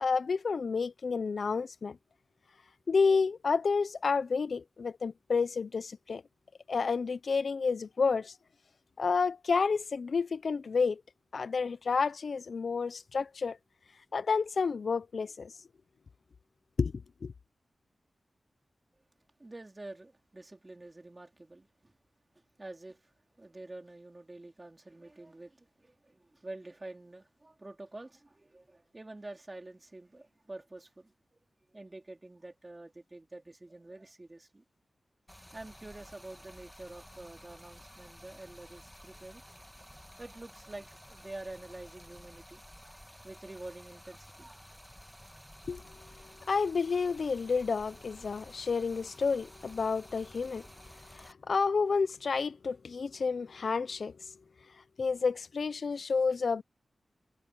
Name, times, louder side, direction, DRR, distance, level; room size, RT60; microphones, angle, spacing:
voice 1, 0.0-2.0 2.9-6.2 6.7-8.3 9.0-11.0 11.3-13.6 14.1-15.5 16.8-16.9 17.2-17.3 45.7-45.8 46.5-50.7 51.1-54.1 55.0-56.6, left 5 dB, 65° left, 0.4 m, -30 dB
voice 2, 19.4-21.9 22.4-31.1 31.7-34.6 35.5-39.4 40.2-44.6, right 2 dB, 25° right, 3.4 m, -48 dB
Stream, 35.3-51.3, equal, 5° left, 1.4 m, -53 dB
wide cardioid pair, 120°, 0 cm